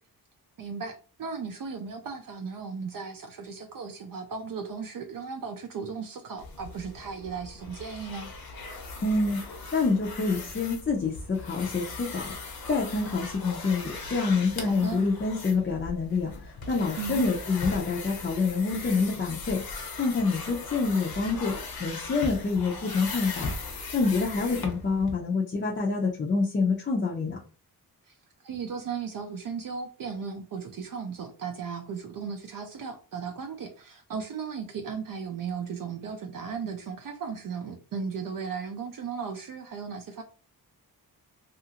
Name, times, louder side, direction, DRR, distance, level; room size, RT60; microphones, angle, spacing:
voice 1, 0.6-8.3 14.7-15.0 17.0-17.3 28.0-28.1 28.4-40.2, right 6 dB, 60° right, 5 dB, 0.5 m, -36 dB
sound 1, 6.4-25.1, left 3 dB, 65° left, 0.7 m, -39 dB
voice 2, 9.0-12.2 12.7-19.6 20.0-21.5 21.8-23.5 23.9-27.4, left 4 dB, 30° left, -3 dB, 0.4 m, -27 dB
2.7 x 2.4 x 2.8 m, 0.36 s
wide cardioid pair, 155°, 39 cm